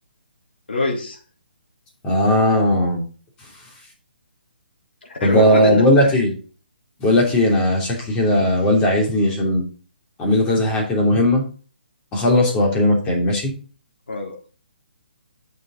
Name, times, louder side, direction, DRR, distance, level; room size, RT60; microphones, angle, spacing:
voice 1, 0.7-1.2 5.1-6.2 14.1-14.5, left 3 dB, 70° left, 1 dB, 3.5 m, -25 dB
voice 2, 2.0-3.0 5.2-6.3 7.0-9.6 10.2-11.4 12.1-13.5, left 1 dB, 15° left, 0 dB, 3.0 m, -17 dB
8.6 x 6.5 x 4.0 m, 0.39 s
hypercardioid pair, 150°, 6 cm